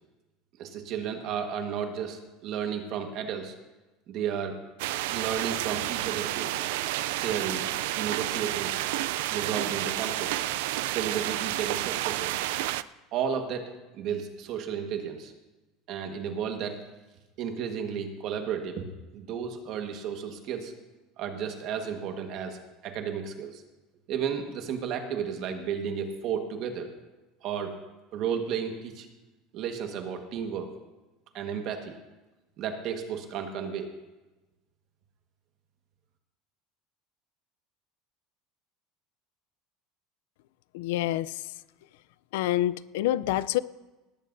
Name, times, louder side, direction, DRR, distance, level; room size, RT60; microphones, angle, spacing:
voice 1, 0.6-3.5 4.1-4.6 5.1-6.5 7.1-8.7 9.3-10.5 10.9-12.4 13.1-15.3 15.9-16.8 17.4-18.8 19.1-20.7 21.2-23.6 24.1-26.9 27.4-27.8 28.1-29.1 29.5-30.7 31.3-32.0 32.6-33.9, right 7 dB, 40° right, 5 dB, 1.4 m, -33 dB
sound 1, 4.8-12.8, right 15 dB, 80° right, 0.3 m, -30 dB
voice 2, 40.7-41.3 42.3-43.6, left 14 dB, 80° left, 18 dB, 0.4 m, -27 dB
19.0 x 14.0 x 2.6 m, 1.1 s
cardioid pair, 175°, 0 cm